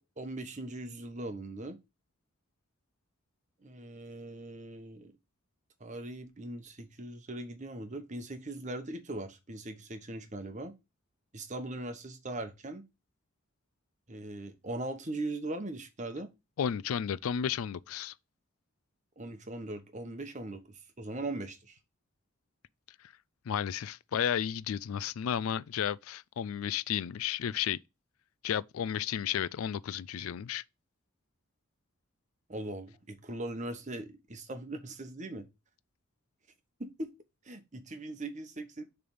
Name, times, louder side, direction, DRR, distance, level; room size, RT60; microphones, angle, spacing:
voice 1, 0.2-1.8 3.6-5.1 5.8-10.7 11.3-12.8 14.1-16.3 19.2-21.8 32.5-35.5 36.8-37.1 37.4-38.8, right 2 dB, 35° right, 1.0 m, -40 dB
voice 2, 16.6-18.1 23.5-27.8 28.4-30.6, left 9 dB, 75° left, 0.4 m, -33 dB
6.8 x 3.4 x 5.4 m
head